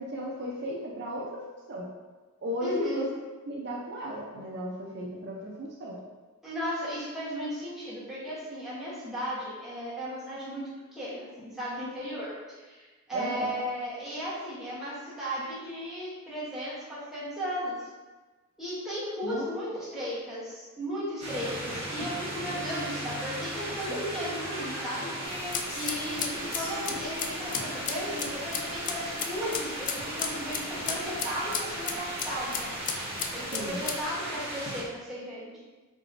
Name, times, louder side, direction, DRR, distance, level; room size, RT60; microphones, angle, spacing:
voice 1, 0.0-1.9 2.4-3.1 3.5-6.0 13.1-13.5 19.2-19.4 33.5-33.8, equal, 50° right, -3 dB, 0.5 m, -35 dB
voice 2, 2.6-3.0 6.4-10.6 10.9-17.9 18.6-25.1 25.7-32.7 33.3-35.5, equal, ahead, -10 dB, 1.1 m, -35 dB
sound 1, 21.2-34.8, right 1 dB, 25° right, 1.0 m, -37 dB
Female singing, 22.4-29.7, left 1 dB, 80° left, 1.5 m, -43 dB
sound 2, 25.2-34.0, left 6 dB, 35° left, 0.3 m, -36 dB
4.6 x 2.9 x 2.6 m, 1.3 s
head